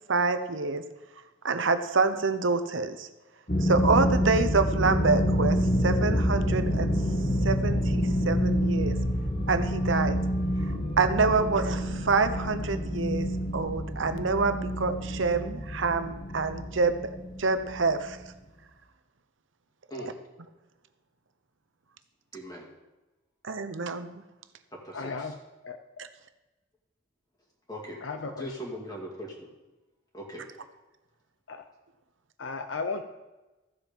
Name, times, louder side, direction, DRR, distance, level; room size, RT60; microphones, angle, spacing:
voice 1, 0.1-0.8 1.4-3.1 3.6-6.9 7.4-9.0 9.5-10.2 10.7-17.1 17.4-18.2 20.0-20.1 23.4-24.2, right 4 dB, 70° right, 9 dB, 0.9 m, -27 dB
sound 1, 3.5-18.3, equal, 40° left, 2.1 m, -28 dB
voice 2, 22.3-22.7 24.8-25.3 27.7-28.0 28.4-29.5 30.1-30.5, equal, 20° left, -3 dB, 2.2 m, -40 dB
voice 3, 24.9-25.4 25.6-25.8 28.0-28.6 31.5-31.6 32.4-33.0, left 4 dB, 75° left, 7 dB, 0.7 m, -34 dB
14.5 x 7.4 x 5.3 m, 1.1 s
head